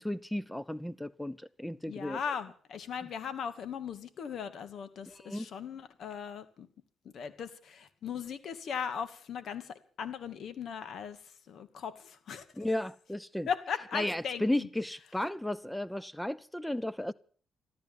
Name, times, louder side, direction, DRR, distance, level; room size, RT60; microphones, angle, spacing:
voice 1, 0.0-2.2 5.1-5.5 12.6-13.5 13.9-17.1, left 1 dB, 5° left, 0.7 m, -34 dB
voice 2, 1.9-6.7 7.1-12.7 13.5-14.7, left 7 dB, 60° left, 2.2 m, -38 dB
13.5 x 13.5 x 7.3 m
cardioid pair, 90°, 0 cm